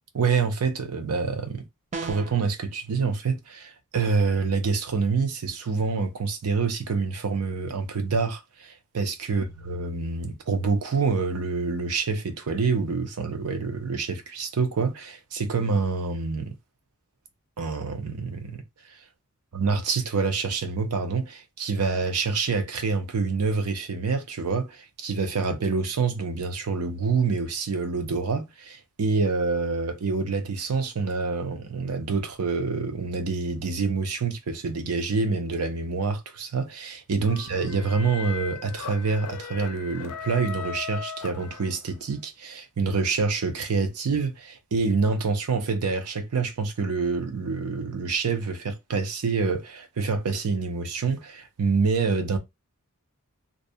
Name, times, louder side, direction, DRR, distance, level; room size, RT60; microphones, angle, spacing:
voice 1, 0.1-1.6 2.0-16.5 17.6-18.6 19.5-52.4, right 4 dB, 85° right, 0.6 m, -27 dB
sound 1, 1.9-2.5, right 4 dB, 30° right, 0.4 m, -34 dB
sound 2, 37.2-42.1, left 6 dB, 90° left, 0.4 m, -38 dB
2.6 x 2.1 x 2.6 m
head